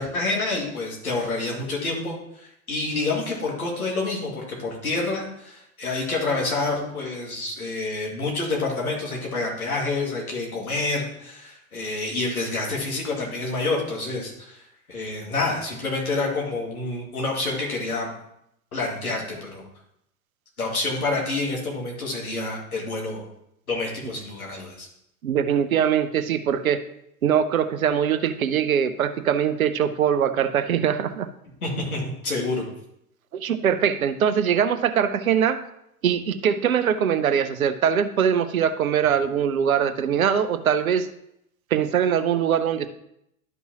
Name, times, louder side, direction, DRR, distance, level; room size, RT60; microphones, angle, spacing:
voice 1, 0.0-18.1 18.7-19.6 20.6-23.3 23.7-24.9 31.6-32.6, left 3 dB, 75° left, -2 dB, 2.3 m, -28 dB
voice 2, 25.2-26.8 27.2-31.3 33.3-35.6 36.0-41.1 41.7-42.9, right 8 dB, 70° right, 11 dB, 0.7 m, -22 dB
12.0 x 5.4 x 2.9 m, 0.77 s
figure-of-eight pair, 90°, 44 cm